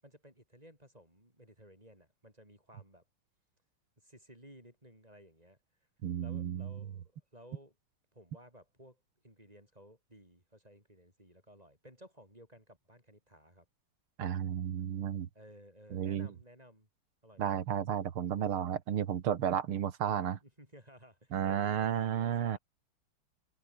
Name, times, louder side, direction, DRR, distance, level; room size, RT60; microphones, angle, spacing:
voice 1, 0.0-3.0 4.0-5.6 6.2-7.8 8.1-13.7 15.3-16.9 17.2-17.6 20.4-22.6, equal, 15° right, 8.0 m, -57 dB
voice 2, 6.0-6.7 14.2-15.3 15.9-16.3 17.4-20.4 21.3-22.6, right 9 dB, 90° right, 2.4 m, -32 dB
omnidirectional pair, 2.3 m